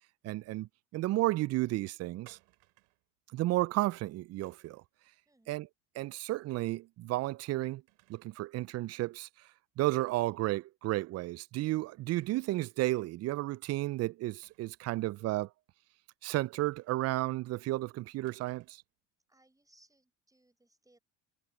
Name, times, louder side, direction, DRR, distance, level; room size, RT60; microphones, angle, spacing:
voice 1, 0.2-2.4 3.3-4.8 5.5-5.7 6.0-7.8 8.1-9.3 9.8-15.5 16.2-18.8, right 17 dB, 45° right, 0.5 m, -32 dB
sound 1, 2.3-3.1 4.4-4.9 6.5-6.8 7.2-7.3 7.9-8.4 8.7-8.8 10.5-10.7 11.0-11.1 12.2-12.8 14.4-14.9 16.8-17.3 18.2-18.9, right 26 dB, 70° right, 6.2 m, -65 dB
voice 2, 5.3-5.7 19.3-21.0, right 1 dB, 10° right, 7.6 m, -67 dB
hypercardioid pair, 70°, 35 cm